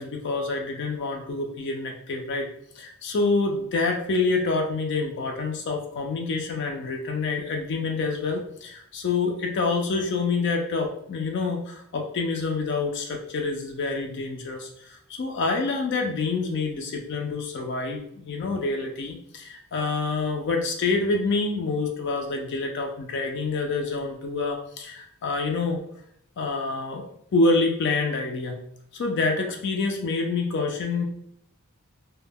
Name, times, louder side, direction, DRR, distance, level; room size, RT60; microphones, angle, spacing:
voice 1, 0.0-2.5 2.8-25.8 26.4-27.0 27.3-28.6 28.9-31.0, left 3 dB, 55° left, 2 dB, 0.4 m, -27 dB
2.1 x 2.1 x 3.4 m, 0.71 s
head